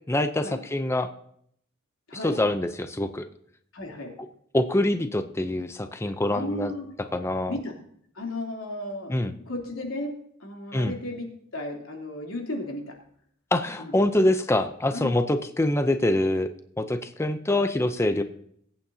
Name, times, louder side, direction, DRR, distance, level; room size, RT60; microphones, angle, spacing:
voice 1, 0.1-1.1 2.2-3.3 4.5-6.7 7.1-7.5 9.1-9.3 10.7-10.9 13.5-16.5 16.8-18.2, left 1 dB, 15° left, 9 dB, 0.5 m, -25 dB
voice 2, 3.7-4.1 6.3-6.9 7.5-7.7 8.1-10.1 10.4-11.3 11.5-12.9 13.8-13.9 14.9-15.1 18.2-18.3, left 1 dB, 90° left, 0 dB, 3.2 m, -34 dB
22.5 x 8.8 x 2.8 m, 0.67 s
head